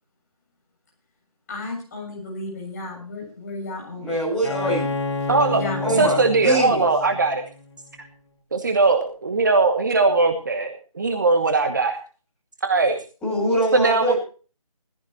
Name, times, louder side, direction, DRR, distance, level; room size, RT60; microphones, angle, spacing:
voice 1, 1.5-4.1 5.5-6.1, left 2 dB, 25° left, -1 dB, 7.0 m, -33 dB
voice 2, 4.0-4.9 5.8-6.8 13.2-14.1, equal, 5° left, -8 dB, 7.4 m, -24 dB
Bowed string instrument, 4.4-8.0, left 3 dB, 50° left, 2.1 m, -30 dB
voice 3, 5.3-5.6 6.0-7.4 8.5-12.0 12.6-13.0 13.7-14.1, right 3 dB, 30° right, 6 dB, 1.2 m, -20 dB
18.0 x 15.5 x 3.0 m, 0.38 s
figure-of-eight pair, 160°, 19 cm